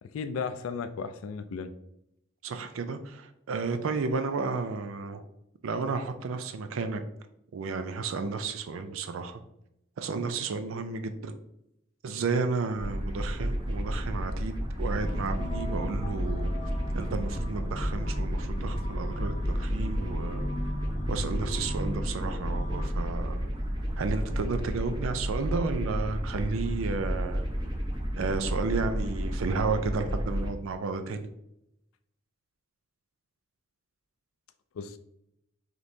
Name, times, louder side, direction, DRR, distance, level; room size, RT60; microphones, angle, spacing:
voice 1, 0.0-1.7 34.7-35.0, left 5 dB, 90° left, 9 dB, 0.4 m, -35 dB
voice 2, 2.4-5.2 5.6-7.0 7.5-9.4 10.0-11.4 12.0-16.7 16.9-20.5 21.1-23.4 24.0-27.4 28.2-31.3, right 4 dB, 80° right, 8 dB, 0.4 m, -32 dB
sound 1, 12.8-30.5, equal, 25° right, 0.8 m, -32 dB
sound 2, 14.9-23.0, left 1 dB, 35° left, 0.6 m, -38 dB
5.1 x 3.1 x 2.7 m, 0.81 s
head